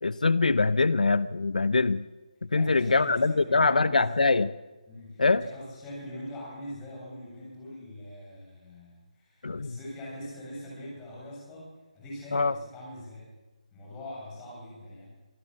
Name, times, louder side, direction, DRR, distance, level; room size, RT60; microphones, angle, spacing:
voice 1, 0.0-2.1 2.5-4.5 5.2-5.4 9.4-9.8 12.3-12.5, left 3 dB, 90° left, 17 dB, 0.8 m, -23 dB
voice 2, 2.5-4.5 4.9-13.3 13.7-15.2, left 1 dB, 10° left, -4 dB, 7.5 m, -43 dB
25.5 x 15.0 x 7.6 m, 1.2 s
hypercardioid pair, 170°, 4 cm